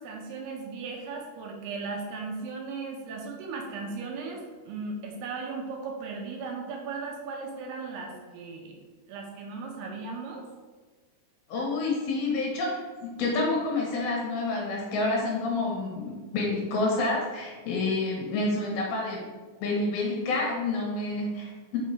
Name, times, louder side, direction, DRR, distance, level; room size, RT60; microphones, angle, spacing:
voice 1, 0.0-8.8 9.1-10.5, right 4 dB, 80° right, 0 dB, 2.6 m, -37 dB
voice 2, 11.5-19.3 19.6-21.8, left 2 dB, 70° left, -1 dB, 2.6 m, -28 dB
6.6 x 5.6 x 3.2 m, 1.4 s
omnidirectional pair, 5.0 m